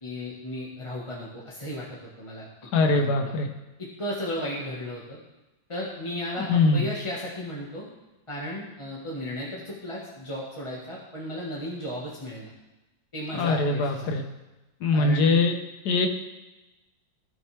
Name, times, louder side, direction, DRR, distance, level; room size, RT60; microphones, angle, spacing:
voice 1, 0.0-2.5 2.9-3.3 3.8-5.2 5.7-7.8 8.3-12.5 13.1-14.2 14.9-15.4, left 1 dB, 15° left, -6 dB, 1.4 m, -35 dB
voice 2, 2.7-3.5 6.5-6.9 13.4-14.2 14.8-15.5 15.8-16.1, left 3 dB, 65° left, 5 dB, 1.3 m, -22 dB
16.5 x 6.2 x 3.4 m, 1.0 s
omnidirectional pair, 2.1 m